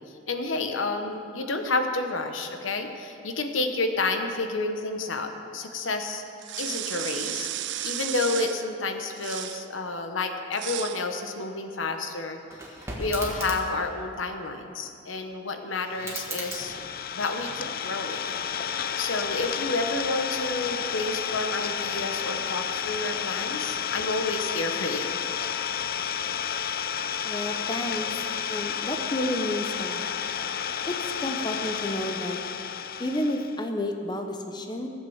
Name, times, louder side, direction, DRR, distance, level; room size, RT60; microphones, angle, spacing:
voice 1, 0.3-6.2 6.6-12.4 13.0-16.7 17.1-18.2 19.0-25.2, left 3 dB, 90° left, 6 dB, 1.1 m, -30 dB
sound 1, 6.4-8.7 9.2-9.7 10.5-11.0, right 13 dB, 60° right, 0.4 m, -33 dB
sound 2, 12.5-13.9 15.9-17.8 18.2-18.9, right 2 dB, 15° right, 1.8 m, -38 dB
Idling, 15.9-33.6, left 8 dB, 50° left, 0.4 m, -31 dB
voice 2, 27.2-28.1 28.5-30.0 30.9-32.4 33.0-34.9, left 1 dB, 20° left, 4 dB, 0.8 m, -31 dB
15.0 x 7.5 x 7.1 m, 2.6 s
head